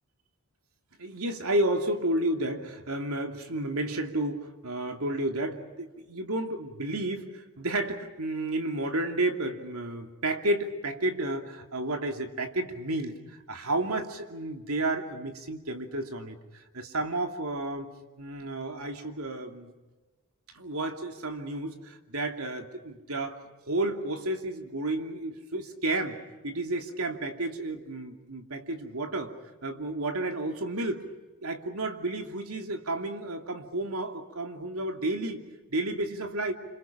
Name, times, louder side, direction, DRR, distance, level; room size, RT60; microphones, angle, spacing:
voice 1, 1.0-17.9 18.2-19.7 20.5-26.2 26.4-29.3 29.6-31.0 31.4-35.4 35.7-36.5, right 1 dB, 80° right, 5 dB, 2.7 m, -31 dB
29.0 x 26.5 x 5.9 m, 1.2 s
head